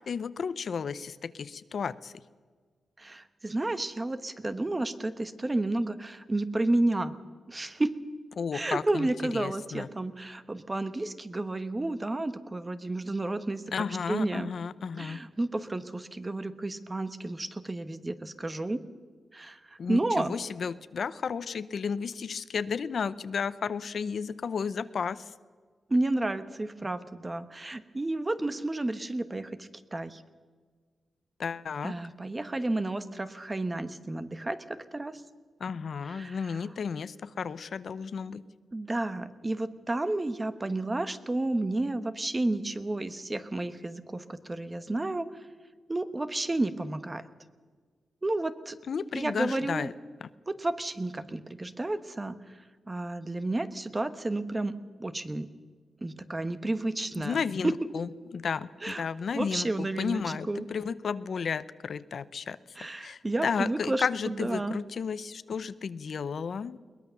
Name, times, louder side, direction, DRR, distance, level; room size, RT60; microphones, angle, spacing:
voice 1, 0.1-2.1 8.4-9.1 9.3-9.9 13.7-15.2 19.8-25.3 31.4-31.9 35.6-38.4 48.9-49.9 57.2-62.6 63.0-66.8, left 6 dB, 60° left, 15 dB, 0.7 m, -33 dB
voice 2, 3.0-7.1 7.5-7.9 8.5-14.5 15.0-18.8 19.3-20.4 25.9-30.2 31.8-35.2 36.0-36.6 38.7-45.4 45.9-47.2 48.2-48.8 49.1-49.9 50.5-52.4 52.9-54.7 55.0-55.5 56.0-57.4 57.6-57.7 58.8-59.0 59.3-60.7 62.8-64.8, right 2 dB, 20° right, 12 dB, 1.1 m, -31 dB
22.0 x 19.5 x 6.9 m, 1.5 s
wide cardioid pair, 135°, 0 cm